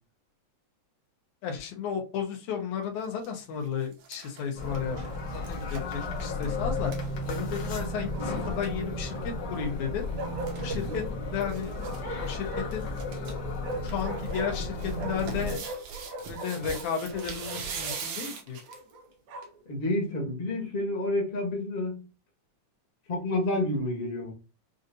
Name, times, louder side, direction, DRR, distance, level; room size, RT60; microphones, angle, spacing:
voice 1, 1.4-5.0 5.5-6.9 7.3-10.0 10.6-11.0 11.3-11.7 12.2-12.9 13.8-15.6 16.3-18.6, left 7 dB, 80° left, 2 dB, 2.3 m, -33 dB
sound 1, 3.0-3.3 3.7-7.9 8.2-8.3 8.5-8.7 10.0-10.9 11.5-12.0 12.3-12.4 12.7-13.3 13.7-18.9 19.4-19.5, right 6 dB, 70° right, 2.2 m, -41 dB
sound 2, 4.6-15.6, left 2 dB, 65° left, 1.0 m, -34 dB
Bark, 4.6-5.3 7.7-8.8 10.2-11.1 11.8-12.9 13.6-15.3 15.6-18.0 18.7-19.6, right 2 dB, 90° right, 2.6 m, -40 dB
voice 2, 19.6-22.0 23.1-24.3, left 1 dB, 30° left, -1 dB, 1.0 m, -29 dB
6.3 x 2.6 x 2.6 m, 0.32 s
omnidirectional pair, 3.4 m